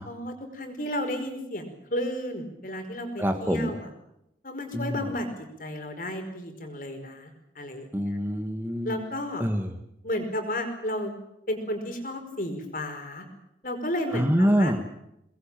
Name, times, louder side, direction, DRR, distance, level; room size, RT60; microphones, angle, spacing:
voice 1, 0.0-3.9 4.4-5.3 5.6-7.9 8.8-9.4 10.0-11.1 11.5-13.2 13.6-14.7, left 1 dB, 50° left, 6 dB, 5.0 m, -32 dB
voice 2, 3.2-3.8 4.7-5.1 7.9-9.0 9.4-9.7 14.1-14.8, equal, 10° right, 4 dB, 1.6 m, -25 dB
24.0 x 20.5 x 9.0 m, 0.83 s
head